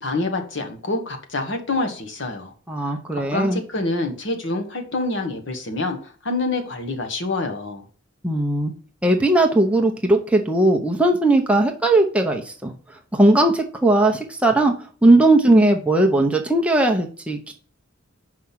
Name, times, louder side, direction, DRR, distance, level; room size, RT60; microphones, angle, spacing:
voice 1, 0.0-2.5 3.1-7.8, left 2 dB, 60° left, 1.3 m, -26 dB
voice 2, 2.7-3.6 8.2-8.7 9.0-12.7 13.1-14.7 15.0-17.5, right 2 dB, 5° right, 0.7 m, -18 dB
5.8 x 4.9 x 5.7 m
head